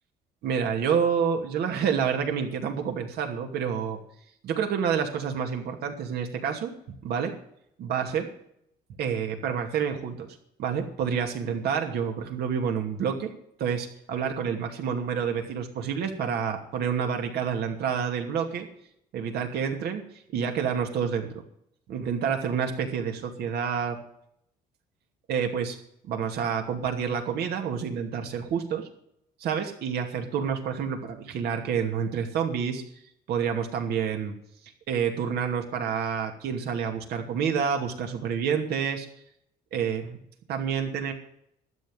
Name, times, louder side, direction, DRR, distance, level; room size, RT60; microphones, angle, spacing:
voice 1, 0.4-4.0 4.4-6.7 7.0-7.3 7.8-8.3 9.0-10.3 10.6-13.3 13.6-18.7 19.1-20.0 20.3-21.4 21.9-24.0 25.3-25.8 26.1-28.9 29.4-32.8 33.3-34.3 34.9-39.1 39.7-40.2 40.5-41.1, right 7 dB, 70° right, 4 dB, 2.6 m, -28 dB
12.5 x 9.4 x 7.8 m, 0.71 s
cardioid pair, 110°, 17 cm